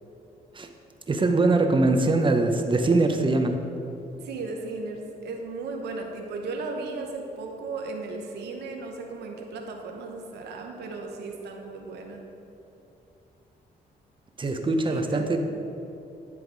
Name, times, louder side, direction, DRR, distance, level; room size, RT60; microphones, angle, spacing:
voice 1, 1.1-3.5 14.4-15.4, right 2 dB, 30° right, 5 dB, 0.8 m, -22 dB
voice 2, 4.2-12.2 14.9-15.3, right 3 dB, 85° right, 2 dB, 0.9 m, -36 dB
10.5 x 3.5 x 4.7 m, 2.9 s
cardioid pair, 75°, 17 cm